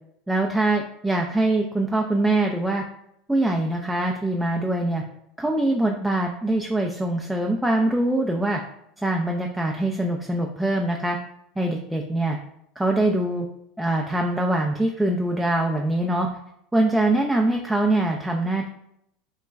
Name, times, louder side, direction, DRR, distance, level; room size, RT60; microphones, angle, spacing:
voice 1, 0.3-2.8 3.3-5.0 5.4-8.6 9.0-11.2 11.6-12.4 12.8-13.5 13.8-16.3 16.7-18.7, right 2 dB, 5° right, 1 dB, 0.4 m, -23 dB
3.0 x 2.2 x 3.4 m, 0.75 s
hypercardioid pair, 90°, 0 cm